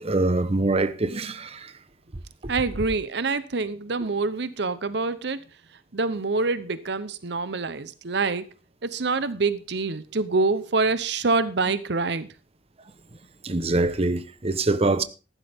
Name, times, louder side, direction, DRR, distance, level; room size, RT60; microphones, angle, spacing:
voice 1, 0.0-1.7 13.4-15.0, right 2 dB, 35° right, 0.9 m, -24 dB
voice 2, 2.5-5.4 5.9-8.5 8.8-12.3, right 3 dB, 65° right, 0.9 m, -26 dB
14.5 x 12.0 x 3.6 m
head